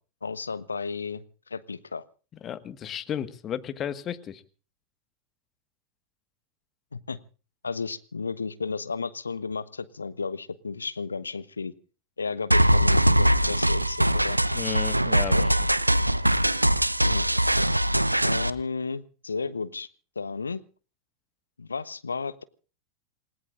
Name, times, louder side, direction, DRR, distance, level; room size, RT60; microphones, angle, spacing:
voice 1, 0.2-2.0 6.9-7.2 7.6-11.7 12.2-14.4 15.3-15.5 17.0-17.3 18.2-19.9 20.1-20.6 21.6-22.4, left 4 dB, 75° left, 15 dB, 1.1 m, -33 dB
voice 2, 2.4-4.4 14.5-15.4, left 10 dB, 30° left, 12 dB, 1.6 m, -33 dB
sound 1, 12.5-18.5, right 1 dB, 85° right, 0.7 m, -22 dB
28.0 x 18.5 x 2.6 m, 0.38 s
figure-of-eight pair, 90°, 0 cm